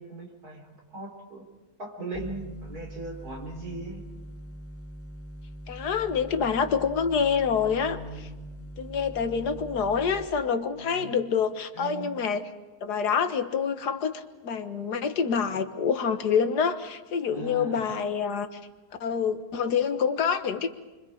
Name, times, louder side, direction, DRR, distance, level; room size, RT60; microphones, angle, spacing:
voice 1, 0.0-1.5 1.8-4.0 7.8-8.3 10.7-11.2 11.7-12.1 17.3-17.9, right 2 dB, 70° right, 0 dB, 4.9 m, -39 dB
sound 1, 2.1-10.3, equal, 10° left, 1.2 m, -42 dB
voice 2, 5.7-8.3 8.8-12.4 12.8-18.5 19.0-20.7, left 6 dB, 85° left, 9 dB, 1.8 m, -27 dB
29.5 x 23.5 x 5.0 m, 1.2 s
omnidirectional pair, 1.7 m